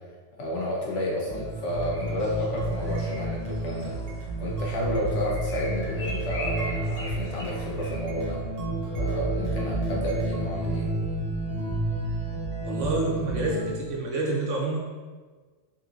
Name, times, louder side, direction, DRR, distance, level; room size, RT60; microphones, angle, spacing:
voice 1, 0.4-3.9 4.4-8.4 8.9-10.9, left 1 dB, 75° left, -4 dB, 1.1 m, -31 dB
sound 1, 1.3-13.7, right 2 dB, 35° right, 0.8 m, -30 dB
sound 2, 1.8-10.4, right 1 dB, 60° right, 0.7 m, -46 dB
sound 3, 1.9-8.0, left 1 dB, 90° left, 1.3 m, -41 dB
voice 2, 12.6-14.8, right 2 dB, 80° right, -3 dB, 1.1 m, -28 dB
3.8 x 2.8 x 2.4 m, 1.4 s
omnidirectional pair, 1.3 m